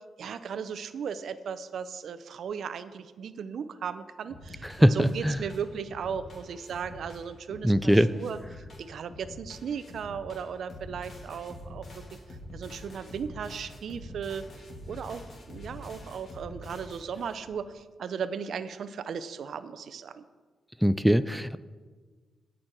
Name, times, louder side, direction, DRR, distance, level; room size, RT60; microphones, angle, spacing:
voice 1, 0.2-8.4 8.8-12.2 12.5-14.4 14.9-20.2, right 7 dB, 70° right, 13 dB, 0.5 m, -36 dB
sound 1, 4.3-17.5, left 1 dB, 55° left, 2.5 m, -46 dB
voice 2, 4.8-5.4 7.6-8.1 20.8-21.6, equal, ahead, 13 dB, 0.3 m, -21 dB
17.0 x 6.2 x 4.4 m, 1.4 s
cardioid pair, 105°, 0 cm